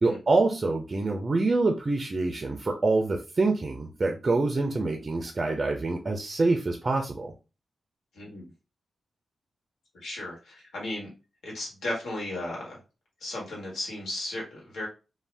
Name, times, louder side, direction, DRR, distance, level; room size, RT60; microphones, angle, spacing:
voice 1, 0.0-7.3, right 3 dB, 35° right, 3 dB, 0.4 m, -26 dB
voice 2, 9.9-11.1 11.4-12.8 13.2-14.9, left 1 dB, 85° left, -3 dB, 1.3 m, -35 dB
2.6 x 2.1 x 3.2 m, 0.31 s
wide cardioid pair, 130°, 0 cm